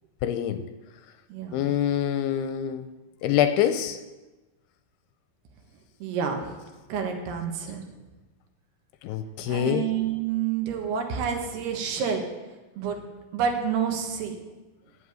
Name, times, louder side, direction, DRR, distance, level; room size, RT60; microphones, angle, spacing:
voice 1, 0.2-0.6 1.5-2.9 3.2-4.0 9.0-9.9, left 10 dB, 90° left, 9 dB, 2.6 m, -25 dB
voice 2, 1.3-1.7 6.0-6.6 6.9-7.8 9.5-12.3 12.8-13.0 13.3-14.4, right 7 dB, 80° right, 3 dB, 3.5 m, -28 dB
10.0 x 8.1 x 9.1 m, 1.1 s
omnidirectional pair, 4.7 m